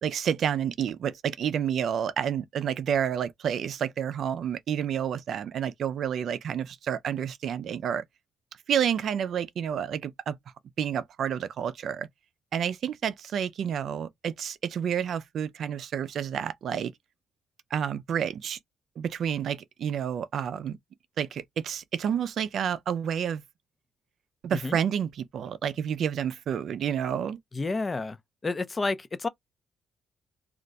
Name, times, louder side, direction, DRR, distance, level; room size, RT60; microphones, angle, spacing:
voice 1, 0.0-8.0 8.7-10.4 10.8-12.1 12.5-16.9 17.7-18.6 19.0-20.8 21.2-23.4 24.4-27.4, right 8 dB, 65° right, 0.4 m, -29 dB
voice 2, 27.5-28.2 28.4-29.3, left 3 dB, 25° left, 0.5 m, -30 dB
2.4 x 2.2 x 3.9 m
cardioid pair, 90°, 0 cm